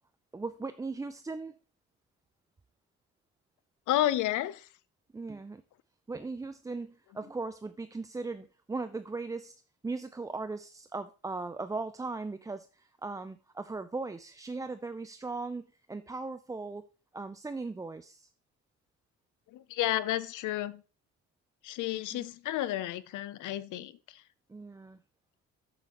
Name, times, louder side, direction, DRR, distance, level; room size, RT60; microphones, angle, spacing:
voice 1, 0.3-1.6 5.1-5.6 6.1-16.9 17.1-18.3 22.1-22.3 24.5-25.0, right 3 dB, 10° right, 0.3 m, -38 dB
voice 2, 3.9-4.7 19.5-20.8 21.6-24.2, left 14 dB, 80° left, 0.6 m, -31 dB
7.8 x 7.4 x 2.9 m
cardioid pair, 90°, 30 cm